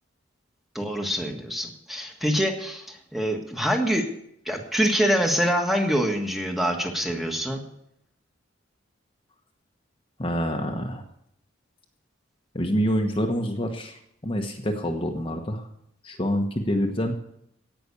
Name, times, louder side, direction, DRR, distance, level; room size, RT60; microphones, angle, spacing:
voice 1, 0.7-4.1 4.4-7.6, equal, ahead, 2 dB, 1.6 m, -25 dB
voice 2, 10.2-11.0 12.5-15.7 16.0-17.1, equal, 30° left, 3 dB, 1.2 m, -27 dB
17.0 x 6.1 x 8.4 m, 0.74 s
head